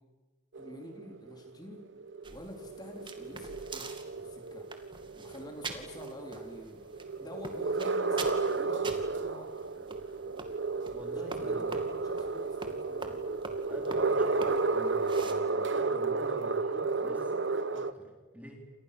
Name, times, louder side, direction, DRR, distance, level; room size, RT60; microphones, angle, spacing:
sound 1, 0.5-17.9, right 3 dB, 80° right, 1.1 m, -33 dB
voice 1, 0.6-1.8 2.3-3.9 4.1-4.7 5.2-10.4 11.2-13.3, left 1 dB, 20° left, 2 dB, 3.9 m, -48 dB
sound 2, 2.2-15.3, right 3 dB, 25° right, 2.4 m, -46 dB
voice 2, 10.9-11.7 13.7-18.6, equal, 10° right, 1 dB, 4.3 m, -47 dB
29.5 x 28.0 x 6.9 m, 1.3 s
head